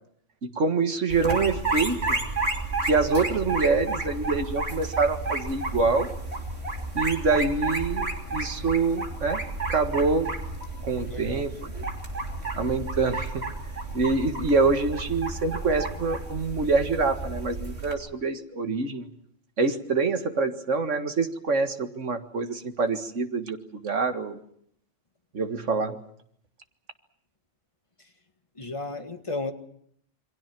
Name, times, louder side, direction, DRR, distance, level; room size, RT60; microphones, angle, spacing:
voice 1, 0.4-2.2 2.8-6.1 7.0-9.4 9.7-10.4 10.8-11.8 12.5-13.5 13.9-19.1 19.6-24.4 25.3-26.0, right 4 dB, 80° right, 8 dB, 2.1 m, -26 dB
sound 1, 1.1-17.9, right 2 dB, 60° right, 3.4 m, -32 dB
voice 2, 11.1-11.4 28.0-28.1 28.5-29.5, left 3 dB, 25° left, 6 dB, 1.9 m, -34 dB
28.0 x 23.0 x 6.1 m, 0.67 s
omnidirectional pair, 1.2 m